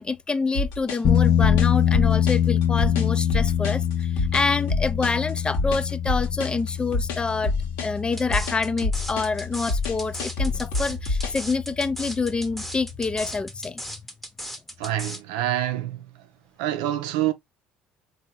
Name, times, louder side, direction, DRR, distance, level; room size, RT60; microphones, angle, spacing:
voice 1, 0.0-7.5 7.8-13.8, left 4 dB, 20° left, 0.4 m, -27 dB
sound 1, 0.5-11.5, left 3 dB, 80° left, 1.3 m, -27 dB
sound 2, 1.0-13.4, left 9 dB, 55° left, 0.7 m, -25 dB
sound 3, 8.2-15.2, equal, 5° left, 0.9 m, -36 dB
voice 2, 14.8-16.1 16.6-17.3, right 13 dB, 85° right, 0.6 m, -26 dB
3.6 x 2.8 x 2.7 m
supercardioid pair, 80°, 4 cm